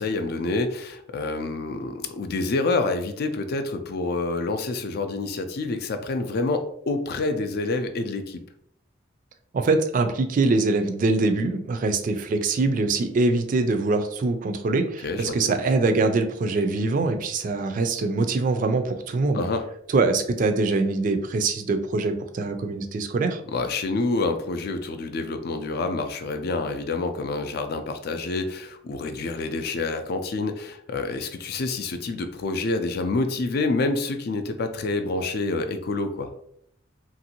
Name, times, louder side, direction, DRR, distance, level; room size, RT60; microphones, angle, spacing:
voice 1, 0.0-8.4 15.0-15.6 19.3-19.6 23.5-36.3, left 3 dB, 55° left, 8 dB, 0.4 m, -27 dB
voice 2, 9.5-19.4 19.9-23.4, right 3 dB, 45° right, 7 dB, 0.3 m, -23 dB
2.9 x 2.6 x 2.8 m, 0.71 s
head